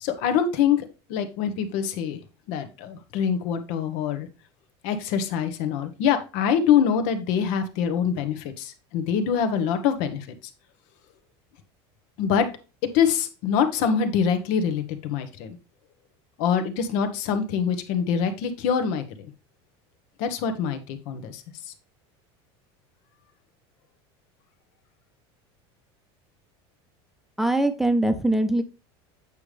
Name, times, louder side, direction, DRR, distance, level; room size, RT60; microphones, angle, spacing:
voice 1, 0.0-2.2 2.5-4.3 4.8-10.3 12.2-12.5 12.9-15.6 16.4-19.0 20.2-21.4, left 7 dB, 65° left, 9 dB, 1.1 m, -24 dB
voice 2, 27.4-28.6, right 1 dB, ahead, 9 dB, 0.8 m, -22 dB
8.2 x 5.1 x 3.3 m, 0.32 s
supercardioid pair, 135°, 14 cm